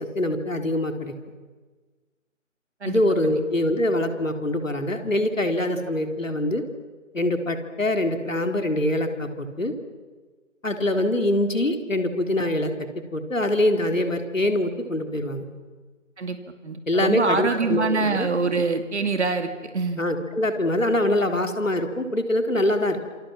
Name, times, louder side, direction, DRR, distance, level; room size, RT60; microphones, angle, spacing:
voice 1, 0.2-1.1 2.8-6.6 7.1-9.7 10.6-12.7 13.1-15.5 16.9-18.3 20.0-23.1, left 1 dB, 80° left, 5 dB, 3.9 m, -24 dB
voice 2, 2.8-3.4 16.2-16.4 16.6-20.0, right 4 dB, 60° right, 7 dB, 2.4 m, -25 dB
27.5 x 27.5 x 7.5 m, 1.4 s
figure-of-eight pair, 150°, 39 cm